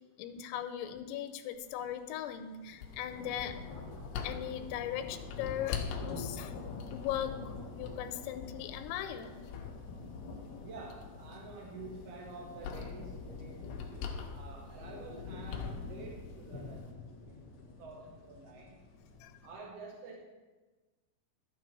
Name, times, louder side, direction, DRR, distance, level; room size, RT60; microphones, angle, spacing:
voice 1, 0.2-3.6 4.2-6.6 6.9-9.4 19.2-19.3, left 10 dB, 90° left, 9 dB, 3.1 m, -39 dB
sound 1, 1.7-1.9 2.3-19.5, left 4 dB, 55° left, 2.3 m, -47 dB
sound 2, 2.8-16.9, left 6 dB, 75° left, 3.1 m, -45 dB
voice 2, 10.6-16.9 17.2-18.8 19.4-20.2, right 3 dB, 70° right, -1 dB, 1.4 m, -49 dB
12.5 x 9.6 x 4.5 m, 1.2 s
omnidirectional pair, 5.2 m